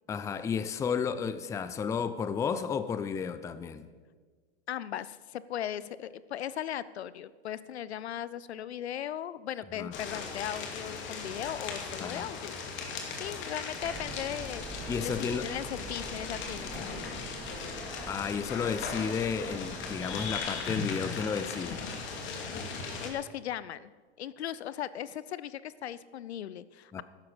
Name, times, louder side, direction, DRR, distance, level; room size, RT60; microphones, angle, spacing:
voice 1, 0.1-3.8 9.8-9.9 12.0-12.3 14.9-15.5 18.1-21.8 26.9-27.0, left 6 dB, 10° left, 13 dB, 0.4 m, -32 dB
voice 2, 4.7-12.5 13.2-17.2 23.0-23.9 24.2-27.0, left 11 dB, 75° left, 18 dB, 0.7 m, -38 dB
sound 1, 9.9-23.1, left 4 dB, 35° left, 2.4 m, -38 dB
sound 2, 13.8-20.5, right 4 dB, 10° right, 0.8 m, -45 dB
13.5 x 11.0 x 5.1 m, 1.5 s
hypercardioid pair, 110°, 33 cm